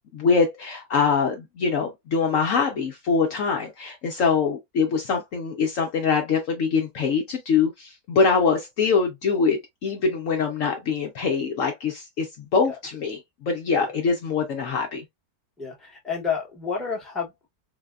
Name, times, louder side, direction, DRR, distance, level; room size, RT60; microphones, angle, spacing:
voice 1, 0.1-15.0, left 5 dB, 65° left, 0.9 m, -24 dB
voice 2, 15.6-17.5, left 6 dB, ahead, 0.8 m, -30 dB
4.0 x 2.1 x 2.3 m
omnidirectional pair, 1.8 m